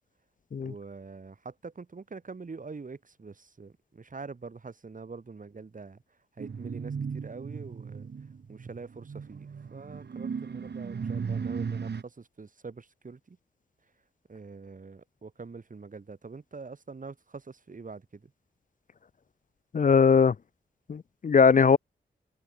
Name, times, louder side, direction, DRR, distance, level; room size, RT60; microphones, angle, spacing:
voice 1, 0.6-6.0 6.4-8.1 8.5-13.4 14.3-18.3, right 4 dB, 45° right, 6.5 m, -44 dB
sound 1, 6.4-12.0, right 6 dB, 65° right, 4.8 m, -36 dB
voice 2, 19.7-20.3 20.9-21.8, left 6 dB, 45° left, 0.6 m, -20 dB
wide cardioid pair, 100°, 19 cm